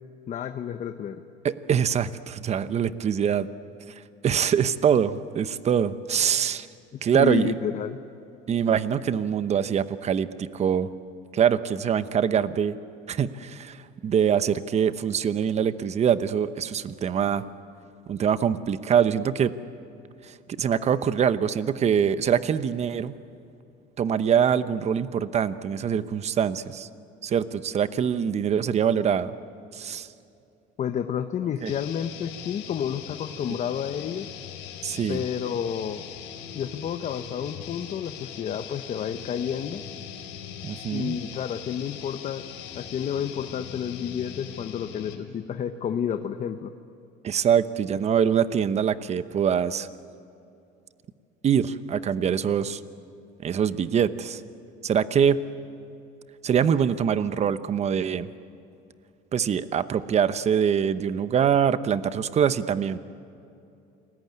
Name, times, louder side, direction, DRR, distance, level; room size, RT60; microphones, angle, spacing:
voice 1, 0.3-1.2 6.9-8.0 30.8-34.3 35.1-36.1 36.5-39.8 40.9-42.4 42.7-46.7, left 8 dB, 40° left, 8 dB, 1.0 m, -30 dB
voice 2, 1.4-3.5 4.2-6.7 7.0-7.6 8.5-10.9 11.3-12.8 13.1-17.4 18.1-19.5 20.2-23.2 24.0-26.9 27.2-29.3 29.7-30.1 31.6-31.7 34.8-35.2 40.6-41.2 47.2-49.9 51.4-52.8 53.4-54.4 54.8-55.4 56.4-58.3 59.3-63.0, right 8 dB, 35° right, 13 dB, 0.9 m, -24 dB
sound 1, 31.6-45.4, left 9 dB, 85° left, 3.8 m, -41 dB
29.0 x 20.5 x 9.6 m, 2.6 s
cardioid pair, 130°, 19 cm